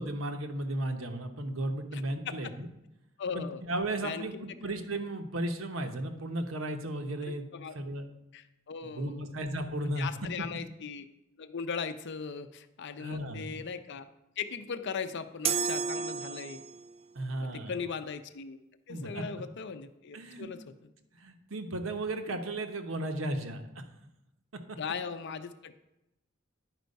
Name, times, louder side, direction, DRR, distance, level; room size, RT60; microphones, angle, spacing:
voice 1, 0.0-2.7 3.3-7.5 7.7-8.1 8.8-10.1 10.4-10.5 13.0-13.7 17.1-17.8 18.9-19.2 20.1-20.5 21.2-23.6 24.7-24.8, right 1 dB, 80° right, 6 dB, 0.9 m, -35 dB
voice 2, 1.9-2.5 3.2-3.6 4.0-4.3 7.2-7.8 8.3-9.3 10.0-11.1 11.4-14.1 14.4-16.6 17.4-18.6 18.9-20.6 24.8-25.8, left 6 dB, 60° left, 10 dB, 0.6 m, -38 dB
sound 1, 15.4-16.9, right 6 dB, 30° right, 0.3 m, -32 dB
10.0 x 4.6 x 5.3 m, 0.92 s
head